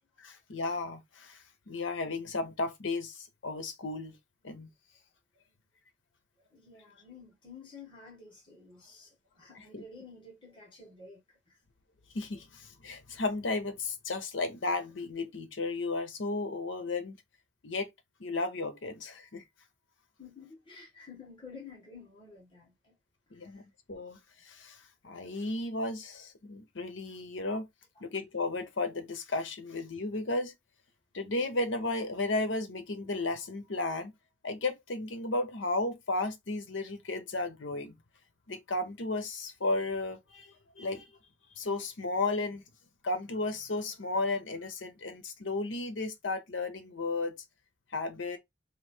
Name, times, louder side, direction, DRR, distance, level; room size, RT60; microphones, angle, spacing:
voice 1, 0.2-1.4 1.7-4.1 4.4-4.7 9.5-9.8 12.1-17.2 17.6-17.9 18.2-19.4 23.3-24.2 24.4-27.7 28.0-30.5 31.1-34.1 34.4-38.0 38.5-41.1 41.6-42.6 43.0-47.4 47.9-48.4, left 2 dB, 85° left, 0.9 m, -34 dB
voice 2, 6.5-11.2 20.2-23.0 23.5-23.6 28.0-28.1, left 4 dB, 25° left, 1.7 m, -51 dB
3.1 x 2.7 x 4.4 m
head